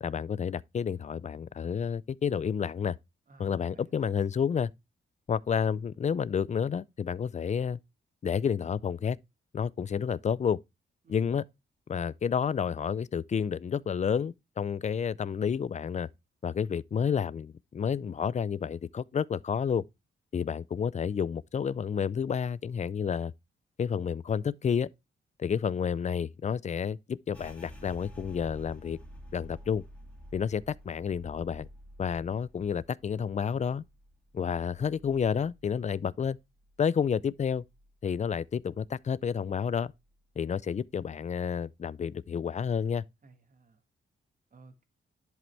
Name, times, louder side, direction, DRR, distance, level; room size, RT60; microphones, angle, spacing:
voice 1, 0.0-3.0 3.4-4.7 5.3-7.8 8.2-9.2 9.5-10.6 11.1-11.4 11.9-16.1 16.4-19.8 20.3-23.3 23.8-24.9 25.4-29.0 29.3-29.8 30.3-31.7 32.0-33.8 34.3-36.4 36.8-37.6 38.0-39.9 40.4-43.0, left 7 dB, 35° left, 0.4 m, -30 dB
voice 2, 3.3-4.1 11.0-11.3 43.2-43.8 44.5-44.9, right 3 dB, 40° right, 1.6 m, -57 dB
sound 1, 27.3-36.7 37.0-38.3 38.6-39.1 39.5-40.1, equal, 5° left, 2.3 m, -51 dB
10.5 x 5.1 x 3.2 m
cardioid pair, 95°, 21 cm